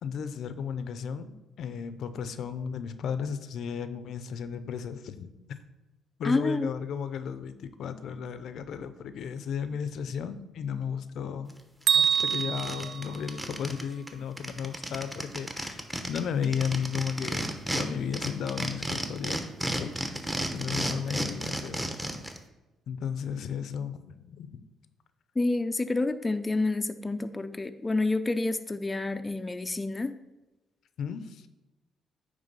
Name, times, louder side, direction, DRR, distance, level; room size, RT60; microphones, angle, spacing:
voice 1, 0.0-5.3 6.2-11.5 11.9-19.4 19.8-19.9 20.5-21.9 22.9-24.6 31.0-31.5, left 7 dB, 70° left, 12 dB, 0.5 m, -34 dB
voice 2, 6.2-6.7 25.4-30.2, left 2 dB, 20° left, 8 dB, 0.4 m, -28 dB
sound 1, 11.5-11.6 11.9-13.8 14.1-14.2 14.4-17.8 18.1-22.4, right 1 dB, 10° right, 0.9 m, -32 dB
Bell, 11.9-13.9, right 7 dB, 70° right, 0.4 m, -27 dB
9.1 x 3.2 x 5.4 m, 1.0 s
cardioid pair, 90°, 0 cm